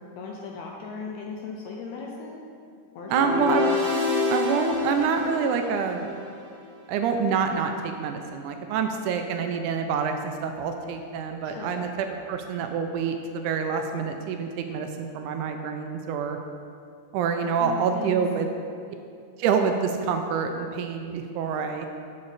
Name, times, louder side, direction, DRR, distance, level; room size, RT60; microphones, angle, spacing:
voice 1, 0.2-2.4 2.9-3.5 11.4-11.9 17.6-18.3, left 4 dB, 75° left, -1 dB, 1.7 m, -37 dB
sound 1, 3.0-6.3, left 3 dB, 30° right, 2.2 m, -27 dB
voice 2, 3.1-3.7 4.3-6.1 6.9-16.4 17.1-18.5 19.4-21.9, right 6 dB, 80° right, 5 dB, 1.9 m, -27 dB
8.4 x 6.9 x 4.0 m, 2.4 s
omnidirectional pair, 3.7 m